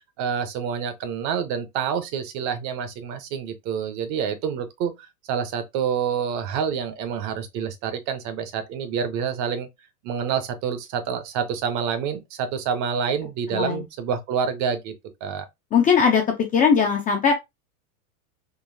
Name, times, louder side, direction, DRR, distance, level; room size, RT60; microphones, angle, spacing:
voice 1, 0.2-9.7 10.0-14.9 15.2-15.4, right 7 dB, 40° right, 0.7 m, -27 dB
voice 2, 13.5-13.8 15.7-16.2 16.5-17.3, left 6 dB, 20° left, 0.4 m, -19 dB
3.9 x 2.7 x 2.6 m
hypercardioid pair, 125°, 46 cm